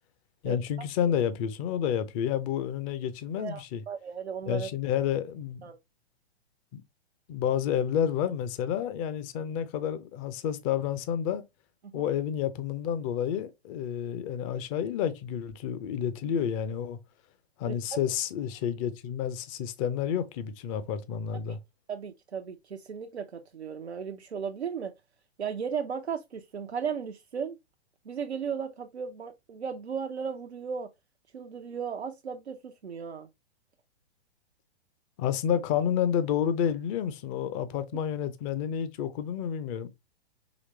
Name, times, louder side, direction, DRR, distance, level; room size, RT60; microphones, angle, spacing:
voice 1, 0.4-3.8 4.5-5.7 6.7-6.8 7.3-11.4 11.9-17.0 17.6-21.6 35.2-39.9, left 9 dB, 30° left, 0.7 m, -30 dB
voice 2, 3.4-4.7 5.6-5.8 11.9-12.1 17.7-17.8 21.5-21.6 21.9-24.9 25.4-27.6 28.1-30.9 31.3-33.3, right 6 dB, 85° right, 0.7 m, -35 dB
5.1 x 3.2 x 3.1 m
figure-of-eight pair, 115°, 32 cm